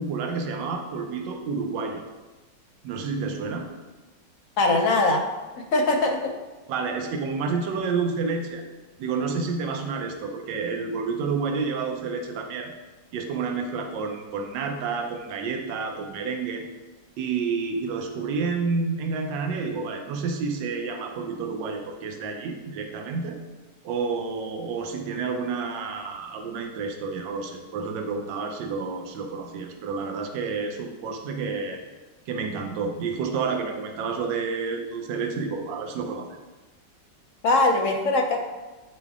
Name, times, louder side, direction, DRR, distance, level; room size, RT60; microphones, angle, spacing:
voice 1, 0.0-2.0 2.8-3.7 6.7-8.6 9.0-12.7 13.1-16.6 17.2-23.4 23.8-31.8 32.3-36.3, right 4 dB, 85° right, 3 dB, 1.4 m, -29 dB
voice 2, 4.6-5.2 5.6-6.3 37.4-38.4, left 2 dB, 60° left, 2 dB, 0.8 m, -21 dB
9.0 x 3.3 x 3.5 m, 1.2 s
omnidirectional pair, 2.0 m